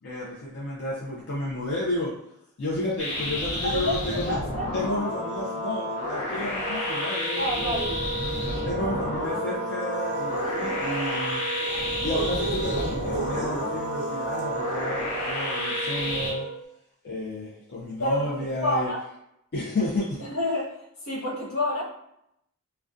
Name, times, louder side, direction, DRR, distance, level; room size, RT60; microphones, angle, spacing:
voice 1, 0.0-2.1 2.6-4.4 4.7-8.0 8.6-11.4 12.0-16.5 17.0-18.9 19.5-20.2, left 1 dB, 50° left, -5 dB, 0.4 m, -31 dB
sound 1, 3.0-16.3, left 1 dB, 35° left, 0.8 m, -31 dB
voice 2, 3.6-4.7 7.4-7.9 10.3-10.7 18.0-18.3 18.6-19.0 20.2-20.7 21.1-21.8, left 1 dB, 70° left, -5 dB, 0.9 m, -28 dB
Wind instrument woodwind instrument, 6.6-16.6, right 2 dB, 25° right, 1.0 m, -34 dB
sound 2, 10.1-14.6, right 5 dB, 55° right, 0.4 m, -37 dB
2.3 x 2.1 x 2.5 m, 0.78 s
head